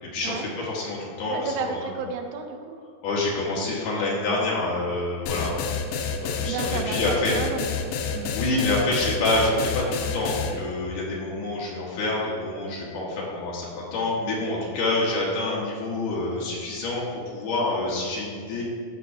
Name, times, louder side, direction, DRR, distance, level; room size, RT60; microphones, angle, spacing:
voice 1, 0.0-1.9 3.0-5.6 6.2-7.3 8.3-17.1 17.3-18.6, left 2 dB, 65° left, -4 dB, 2.7 m, -27 dB
voice 2, 1.3-2.8 6.5-8.3, right 5 dB, 80° right, 4 dB, 2.2 m, -32 dB
sound 1, 5.3-10.5, left 6 dB, 85° left, 2.4 m, -28 dB
12.5 x 5.7 x 2.7 m, 2.1 s
omnidirectional pair, 4.4 m